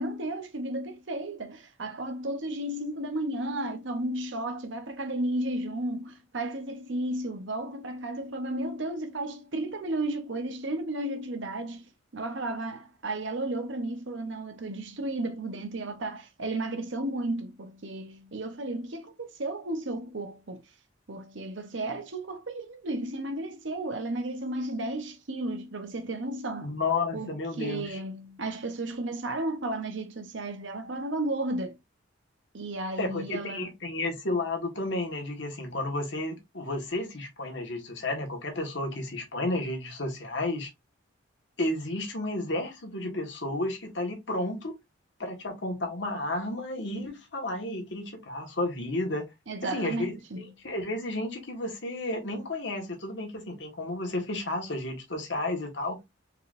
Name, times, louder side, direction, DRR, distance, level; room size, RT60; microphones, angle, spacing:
voice 1, 0.0-20.6 21.1-26.7 27.1-27.3 27.6-31.8 32.5-33.7 49.5-50.5, right 1 dB, 65° right, 0.9 m, -33 dB
voice 2, 26.6-28.0 33.0-40.7 41.6-44.7 45.2-49.3 49.6-56.0, left 2 dB, 60° left, 1.5 m, -32 dB
4.6 x 3.8 x 2.5 m
head